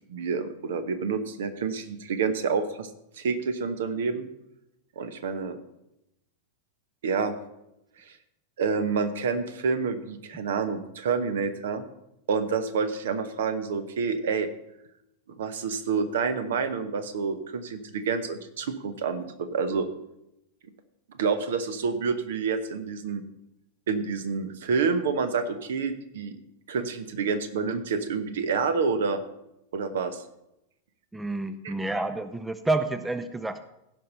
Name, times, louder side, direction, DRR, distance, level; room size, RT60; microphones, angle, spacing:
voice 1, 0.1-2.9 3.2-4.3 5.0-5.6 7.0-7.3 8.0-8.2 8.6-11.8 12.3-14.5 15.3-19.9 21.2-23.2 23.9-26.4 26.7-29.2 29.7-30.2 31.6-31.7, right 5 dB, 60° right, 11 dB, 0.9 m, -28 dB
voice 2, 31.1-33.7, right 2 dB, 10° right, 12 dB, 0.5 m, -29 dB
16.0 x 5.4 x 5.4 m, 0.87 s
figure-of-eight pair, 90°, 0 cm